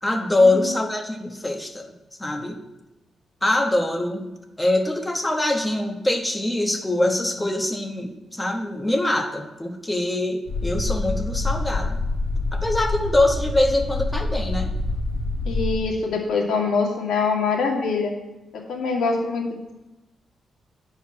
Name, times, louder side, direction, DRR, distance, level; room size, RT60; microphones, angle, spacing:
voice 1, 0.0-1.9 2.2-2.6 3.4-4.3 4.6-12.0 12.5-14.7, left 1 dB, 10° left, 3 dB, 1.1 m, -23 dB
sound 1, 10.5-15.8, left 2 dB, 55° left, 2.0 m, -26 dB
voice 2, 15.4-18.1 18.7-19.4, left 4 dB, 90° left, 0 dB, 2.0 m, -23 dB
9.1 x 4.7 x 5.7 m, 1.0 s
cardioid pair, 135°, 0 cm